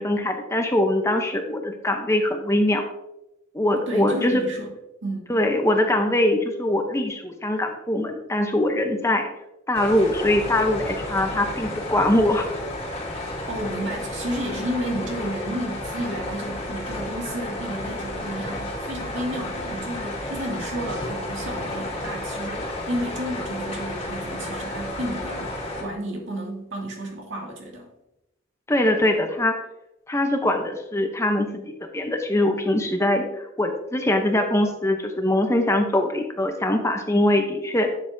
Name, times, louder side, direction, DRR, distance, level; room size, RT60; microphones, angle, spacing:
voice 1, 0.0-2.8 3.5-4.4 5.3-9.3 9.7-12.4 28.7-29.6 30.1-37.9, left 1 dB, 15° left, 4 dB, 0.7 m, -22 dB
voice 2, 3.9-4.7 5.0-5.3 13.1-25.5 25.8-27.9, right 1 dB, 70° right, 0 dB, 2.2 m, -32 dB
sound 1, 9.7-25.8, left 1 dB, 30° left, 2.1 m, -32 dB
11.0 x 7.2 x 2.7 m, 0.89 s
head